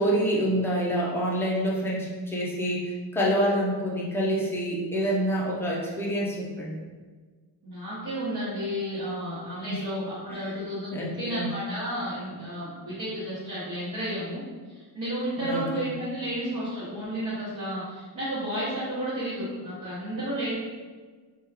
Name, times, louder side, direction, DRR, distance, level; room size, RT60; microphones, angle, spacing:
voice 1, 0.0-6.8 9.7-9.8 10.3-10.5 10.9-11.5 15.4-15.9, equal, 5° left, -5 dB, 0.4 m, -27 dB
voice 2, 7.6-20.5, equal, 50° right, -11 dB, 1.1 m, -32 dB
3.0 x 2.3 x 3.4 m, 1.4 s
cardioid pair, 165°, 43 cm